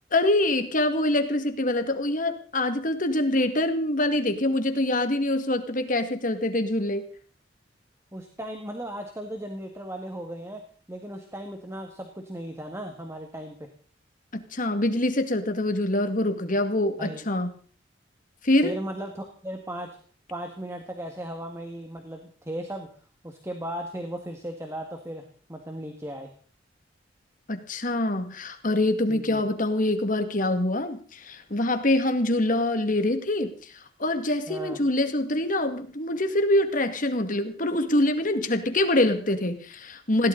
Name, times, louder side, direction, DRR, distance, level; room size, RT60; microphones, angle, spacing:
voice 1, 0.1-7.0 14.3-17.5 18.4-18.8 27.5-33.7 34.0-40.3, left 1 dB, 45° left, 8 dB, 2.1 m, -25 dB
voice 2, 8.1-13.7 17.0-17.2 18.6-20.0 20.3-22.9 23.2-26.3 29.1-29.4 34.5-34.8, right 1 dB, 15° right, 4 dB, 1.9 m, -36 dB
20.5 x 17.5 x 4.0 m, 0.41 s
head